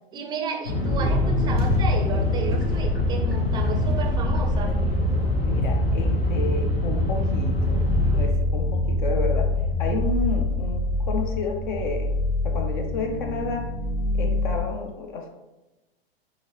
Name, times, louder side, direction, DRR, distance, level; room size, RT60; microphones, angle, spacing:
voice 1, 0.1-4.8, right 5 dB, 15° right, 3 dB, 0.5 m, -32 dB
sound 1, 0.6-8.3, left 2 dB, 80° left, 0.9 m, -24 dB
sound 2, 0.9-14.6, left 1 dB, 20° left, 1.0 m, -26 dB
voice 2, 5.4-7.8 8.1-9.5 9.8-12.1 12.4-13.7 14.2-15.3, left 3 dB, 55° left, 4 dB, 0.6 m, -31 dB
5.1 x 2.5 x 3.0 m, 1.0 s
figure-of-eight pair, 95°, 30 cm